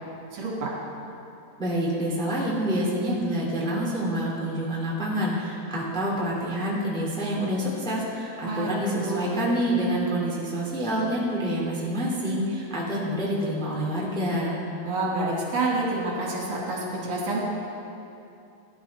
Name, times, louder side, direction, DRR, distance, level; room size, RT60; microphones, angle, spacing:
voice 1, 0.3-0.7 8.4-8.7 9.0-9.3 14.8-17.4, right 2 dB, 75° right, -4 dB, 4.0 m, -28 dB
voice 2, 1.6-14.6, equal, ahead, -5 dB, 2.1 m, -27 dB
19.5 x 11.5 x 3.6 m, 2.7 s
omnidirectional pair, 3.9 m